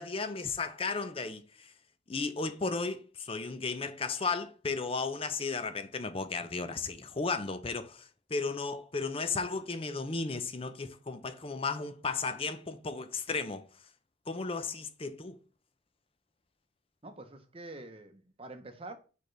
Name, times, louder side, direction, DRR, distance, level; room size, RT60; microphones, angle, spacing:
voice 1, 0.0-1.7 2.1-13.7 14.3-15.4, left 4 dB, 30° left, 0.5 m, -34 dB
voice 2, 17.0-19.0, right 2 dB, 30° right, 0.8 m, -46 dB
6.6 x 5.1 x 3.3 m
head